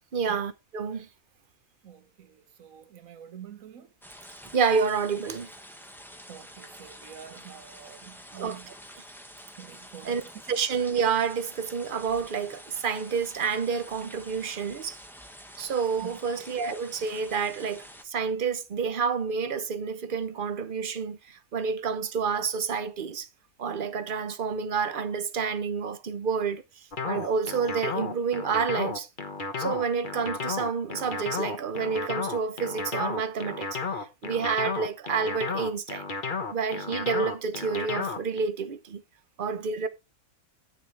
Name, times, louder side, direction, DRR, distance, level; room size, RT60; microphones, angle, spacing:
voice 1, 0.1-1.1 4.5-5.5 8.3-8.7 10.0-10.2 10.5-15.0 15.6-21.2 21.5-23.3 23.6-26.6 27.0-29.1 29.6-36.0 36.5-39.0 39.4-39.9, right 5 dB, 40° right, 0.9 m, -29 dB
voice 2, 1.8-3.9 6.3-8.7 9.6-10.3 16.0-16.2, right 9 dB, 70° right, 1.5 m, -47 dB
sound 1, 4.0-18.0, equal, ahead, 1.1 m, -48 dB
sound 2, 26.9-38.4, left 4 dB, 35° left, 1.3 m, -33 dB
9.6 x 9.2 x 3.3 m
omnidirectional pair, 1.5 m